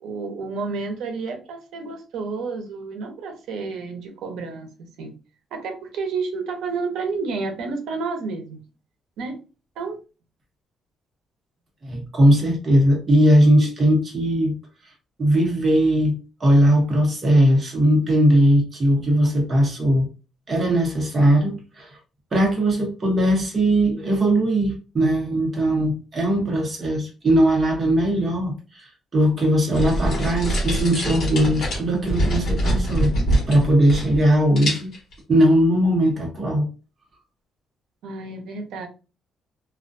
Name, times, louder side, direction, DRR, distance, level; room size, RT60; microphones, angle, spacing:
voice 1, 0.0-5.2 5.5-8.6 9.2-9.4 9.8-10.0 38.0-38.9, right 4 dB, 85° right, 0.7 m, -30 dB
voice 2, 11.8-14.5 15.2-20.1 20.5-21.9 22.3-33.1 33.5-34.9 35.3-36.7, right 1 dB, 25° right, 0.8 m, -19 dB
sound 1, 29.7-34.3 34.6-35.1, equal, 50° left, 1.1 m, -24 dB
2.3 x 2.2 x 2.5 m
cardioid pair, 155°, 0 cm